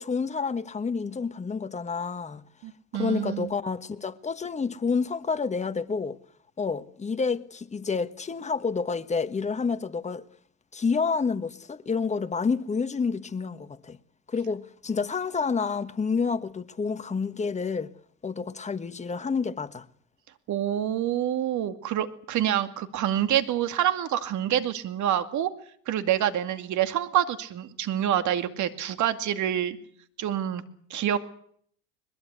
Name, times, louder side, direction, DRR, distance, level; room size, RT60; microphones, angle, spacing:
voice 1, 0.0-2.4 2.9-6.2 6.6-10.2 10.7-14.0 14.3-17.9 18.2-19.8, left 5 dB, 15° left, 1.4 m, -29 dB
voice 2, 2.6-3.5 20.5-25.5 25.9-29.8 30.2-30.6 30.9-31.2, right 11 dB, 45° right, 2.4 m, -27 dB
21.5 x 21.5 x 8.2 m
hypercardioid pair, 95°, 40 cm